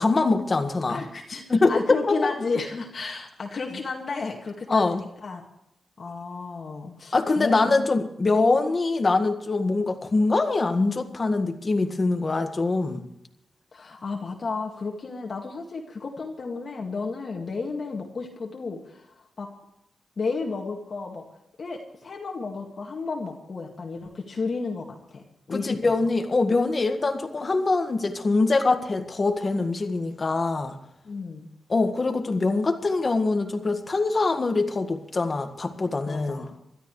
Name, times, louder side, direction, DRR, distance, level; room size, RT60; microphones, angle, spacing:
voice 1, 0.0-1.0 1.5-1.7 2.0-2.3 4.7-5.0 7.1-13.0 25.5-30.8 31.7-36.5, left 3 dB, 35° left, 6 dB, 1.8 m, -23 dB
voice 2, 0.9-1.4 1.7-5.4 6.0-7.9 13.7-19.5 20.2-21.3 21.6-25.2 25.5-25.8 31.0-31.5 36.1-36.5, left 4 dB, 50° left, 0 dB, 2.1 m, -32 dB
27.0 x 13.0 x 3.3 m, 0.82 s
cardioid pair, 95°, 0 cm